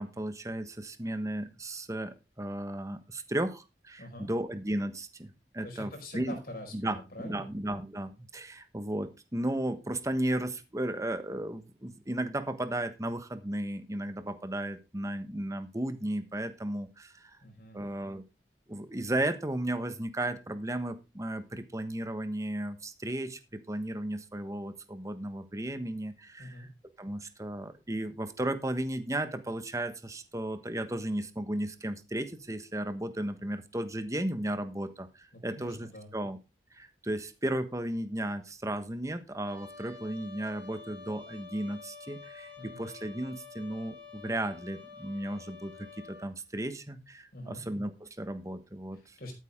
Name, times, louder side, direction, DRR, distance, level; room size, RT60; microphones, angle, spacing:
voice 1, 0.0-6.4 6.7-17.4 17.7-18.2 18.7-26.7 27.0-36.4 36.7-49.1, right 1 dB, 20° right, 10 dB, 1.2 m, -35 dB
voice 2, 4.0-4.3 5.6-7.5 17.4-17.9 26.4-26.7 35.3-36.1 42.6-42.9 47.3-47.6 48.9-49.3, left 1 dB, 55° left, 2 dB, 5.1 m, -44 dB
Trumpet, 39.4-46.3, left 4 dB, 5° left, 3.9 m, -49 dB
13.0 x 8.5 x 3.7 m, 0.27 s
head